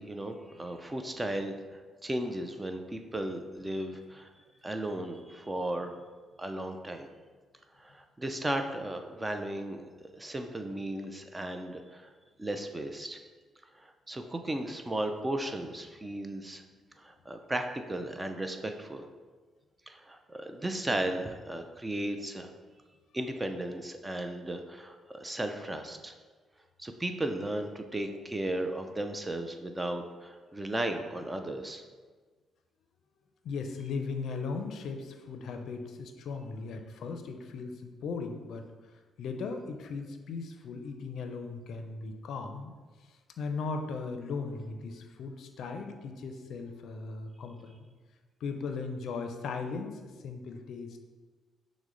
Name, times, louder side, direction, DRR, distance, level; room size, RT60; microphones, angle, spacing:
voice 1, 0.0-4.3 4.6-5.9 6.4-7.1 7.8-9.8 10.2-12.1 12.4-13.2 13.8-16.6 17.0-19.1 19.9-22.5 23.1-26.2 26.8-31.8, right 1 dB, 15° right, 6 dB, 0.4 m, -35 dB
voice 2, 33.4-38.6 39.2-42.7 43.4-47.8 48.4-51.0, left 4 dB, 70° left, 6 dB, 0.4 m, -37 dB
6.1 x 2.1 x 3.8 m, 1.4 s
cardioid pair, 90°, 0 cm